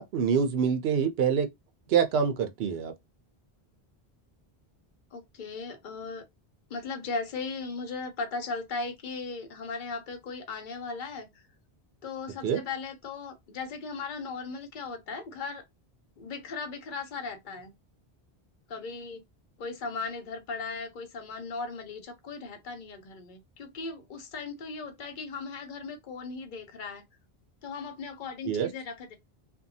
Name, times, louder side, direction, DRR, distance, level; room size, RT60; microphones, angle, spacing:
voice 1, 0.0-1.5 1.9-2.9 12.4-12.6 28.4-28.7, right 7 dB, 75° right, 0.8 m, -26 dB
voice 2, 5.1-6.2 6.7-11.5 12.0-15.6 16.2-17.7 18.7-19.2 19.6-27.0 27.6-29.2, left 4 dB, 55° left, 0.8 m, -37 dB
2.6 x 2.2 x 2.6 m
omnidirectional pair, 1.0 m